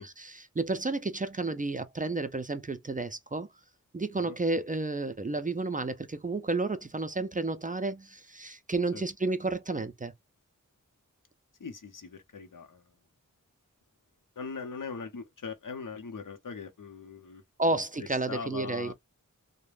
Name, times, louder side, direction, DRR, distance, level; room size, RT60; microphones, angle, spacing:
voice 1, 0.0-3.5 3.9-10.1 17.6-18.9, right 3 dB, 25° right, 0.3 m, -31 dB
voice 2, 11.6-12.9 14.4-17.4 17.7-17.8 18.3-18.9, left 5 dB, 75° left, 0.7 m, -40 dB
2.3 x 2.1 x 3.2 m
wide cardioid pair, 45°, 32 cm